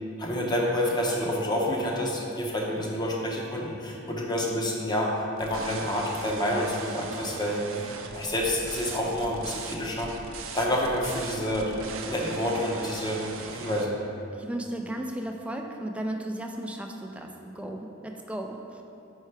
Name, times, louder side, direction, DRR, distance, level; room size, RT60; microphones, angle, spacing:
voice 1, 0.2-7.9 8.1-10.1 10.5-11.7 12.1-13.2 13.5-14.0, left 1 dB, 20° left, -2 dB, 0.7 m, -28 dB
sound 1, 5.4-13.9, right 4 dB, 85° right, 0.5 m, -39 dB
voice 2, 14.3-18.8, right 1 dB, 5° right, 2 dB, 0.4 m, -35 dB
5.7 x 4.6 x 4.5 m, 2.7 s
head